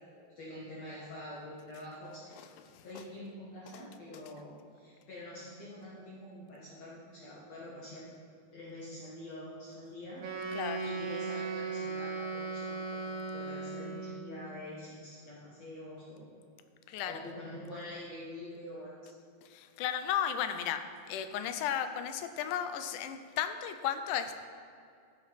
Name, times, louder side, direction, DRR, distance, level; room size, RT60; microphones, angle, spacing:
voice 1, 0.0-2.3 2.8-8.1 8.5-10.3 10.8-16.3 17.0-19.0, left 1 dB, 55° left, -7 dB, 2.7 m, -46 dB
Wind instrument woodwind instrument, 10.2-14.3, right 4 dB, 45° right, 2.5 m, -37 dB
voice 2, 19.5-24.5, left 9 dB, 75° left, 8 dB, 2.0 m, -34 dB
15.0 x 7.7 x 4.2 m, 2.4 s
omnidirectional pair, 4.0 m